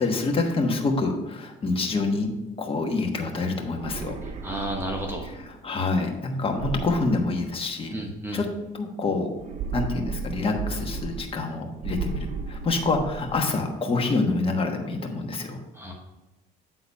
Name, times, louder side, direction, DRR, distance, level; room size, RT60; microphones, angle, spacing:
voice 1, 0.0-2.3 2.6-4.2 5.2-7.9 8.3-8.5 8.7-9.3 9.7-15.6, left 3 dB, 35° left, 3 dB, 1.3 m, -26 dB
sound 1, 3.7-5.6 6.5-7.9 9.3-11.5 11.8-13.5, right 5 dB, 45° right, 0.9 m, -35 dB
voice 2, 4.4-5.3 7.9-8.4 15.7-15.9, right 1 dB, 15° right, 0 dB, 1.1 m, -32 dB
8.4 x 3.9 x 5.4 m, 1.0 s
cardioid pair, 110°, 17 cm